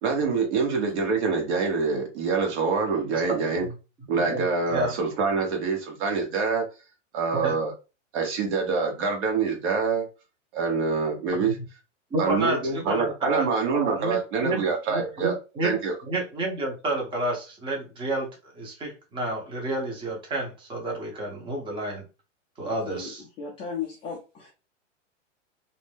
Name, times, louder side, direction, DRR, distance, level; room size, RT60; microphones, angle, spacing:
voice 1, 0.0-3.6 4.1-6.6 7.1-7.7 8.1-10.1 10.5-11.6 12.2-15.3 15.6-15.9, right 4 dB, 60° right, 1.2 m, -25 dB
voice 2, 4.0-4.4 4.7-4.9 7.3-7.5 11.3-11.4 12.1-13.5 13.7-14.6 14.9-15.8 16.1-22.0 22.6-23.2, right 2 dB, 15° right, 0.7 m, -30 dB
voice 3, 22.6-24.5, left 6 dB, 15° left, 0.3 m, -36 dB
2.6 x 2.1 x 3.3 m
hypercardioid pair, 135°, 38 cm